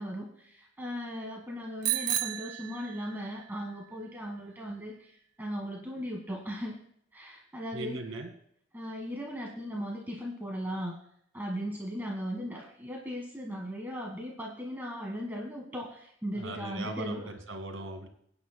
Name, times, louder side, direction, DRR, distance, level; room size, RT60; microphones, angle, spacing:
voice 1, 0.0-5.1 5.4-6.8 7.1-8.0 8.7-11.0 11.3-17.3, equal, 10° right, -1 dB, 1.5 m, -37 dB
Bicycle bell, 1.8-3.4, right 11 dB, 55° right, 0.7 m, -32 dB
voice 2, 7.7-8.3 16.4-18.1, right 2 dB, 85° right, 5 dB, 2.0 m, -39 dB
23.5 x 9.5 x 2.2 m, 0.68 s
head